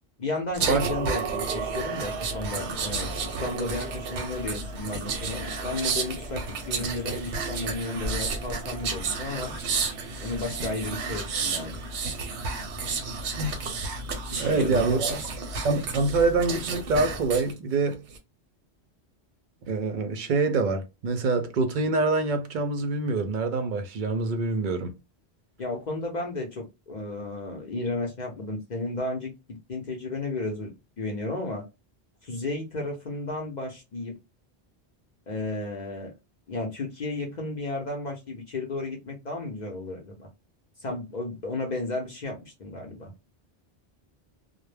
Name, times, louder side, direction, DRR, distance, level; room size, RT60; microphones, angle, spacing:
voice 1, 0.2-9.5 10.2-11.8 14.3-15.2 25.6-30.7 31.0-31.6 32.2-34.2 35.3-36.1 36.5-40.3 40.8-43.1, left 2 dB, 50° left, 0.6 m, -33 dB
sound 1, 0.5-17.5 17.9-18.2, right 4 dB, 85° right, 0.9 m, -31 dB
voice 2, 14.4-15.3 15.6-18.0 19.6-24.9, right 3 dB, 55° right, 0.6 m, -25 dB
2.2 x 2.0 x 3.1 m
omnidirectional pair, 1.1 m